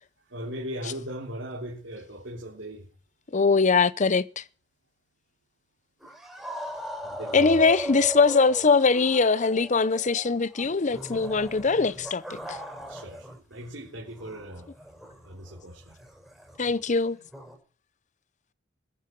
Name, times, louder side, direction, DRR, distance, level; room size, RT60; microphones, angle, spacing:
voice 1, 0.3-2.9 7.0-7.7 12.9-14.7 15.2-15.9, equal, 80° right, 3.6 m, -38 dB
voice 2, 3.3-4.4 7.3-12.2 12.5-12.6 16.6-17.2, left 4 dB, 40° left, 0.7 m, -22 dB
sound 1, 6.0-13.4 13.7-17.6, equal, ahead, 6.5 m, -38 dB
21.0 x 12.0 x 4.6 m
head